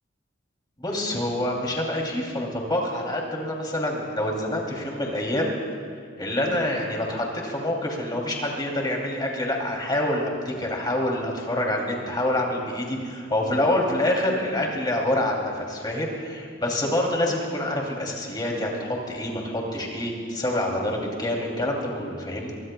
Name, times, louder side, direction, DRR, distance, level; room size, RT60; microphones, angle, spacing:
voice 1, 0.8-5.6 6.2-22.5, left 1 dB, 25° left, -1 dB, 2.8 m, -26 dB
23.0 x 23.0 x 2.3 m, 2.2 s
head